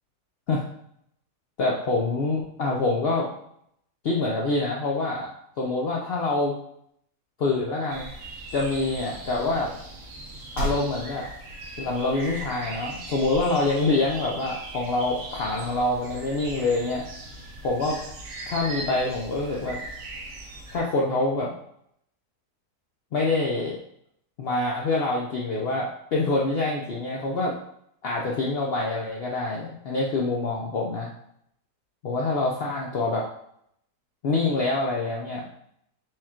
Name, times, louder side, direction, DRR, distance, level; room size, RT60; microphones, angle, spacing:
voice 1, 1.6-3.3 4.0-5.3 5.6-6.6 7.4-8.1 8.5-9.7 10.6-11.3 11.8-17.0 17.6-18.0 18.5-19.8 20.7-21.5 23.1-23.8 24.4-27.6 28.0-31.1 32.0-33.3 34.2-35.5, left 2 dB, 80° left, -3 dB, 0.5 m, -26 dB
sound 1, 7.9-20.8, right 2 dB, 90° right, 1.4 m, -39 dB
sound 2, 9.1-16.6, right 1 dB, 55° right, 1.8 m, -40 dB
4.7 x 2.4 x 4.3 m, 0.74 s
omnidirectional pair, 1.8 m